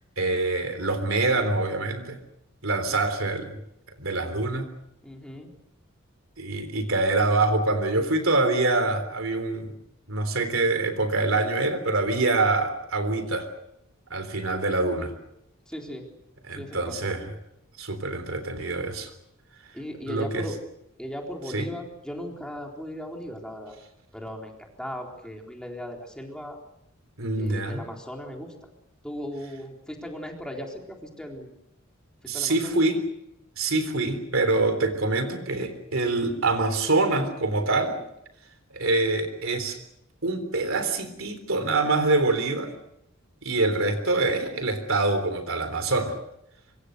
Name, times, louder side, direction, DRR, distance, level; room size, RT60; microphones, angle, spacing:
voice 1, 0.2-2.2 2.6-3.6 4.0-4.7 6.4-9.7 10.1-13.5 14.1-15.1 16.5-17.2 17.8-19.1 20.1-20.4 21.5-21.7 27.2-27.8 32.3-33.0 33.6-38.0 38.7-39.8 40.2-42.7 43.4-46.2, right 2 dB, 70° right, 8 dB, 3.7 m, -25 dB
voice 2, 5.0-5.5 15.7-16.1 16.5-17.0 19.7-20.6 21.0-23.8 24.1-26.6 27.4-28.5 29.0-31.5 32.3-32.8, equal, 5° left, 1 dB, 3.9 m, -37 dB
25.0 x 25.0 x 6.6 m, 0.81 s
head